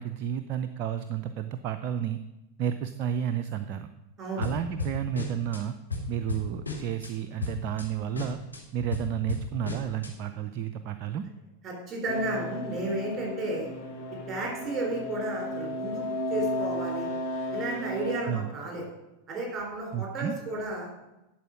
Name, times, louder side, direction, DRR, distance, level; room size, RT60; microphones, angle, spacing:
voice 1, 0.0-2.2 2.6-3.9 4.4-5.7 6.1-8.4 8.7-11.3 18.3-18.5 19.9-20.3, right 9 dB, 40° right, 9 dB, 0.4 m, -31 dB
voice 2, 4.2-4.5 11.6-13.7 14.3-17.1 17.5-18.9 19.3-20.9, right 2 dB, 25° right, -1 dB, 3.6 m, -33 dB
sound 1, 4.4-5.6 5.9-7.1 7.4-7.9 8.1-10.1, left 4 dB, 80° left, 1.7 m, -34 dB
sound 2, 12.1-18.2, left 1 dB, 40° left, 2.1 m, -34 dB
11.0 x 4.5 x 6.0 m, 0.97 s
figure-of-eight pair, 90°, 0 cm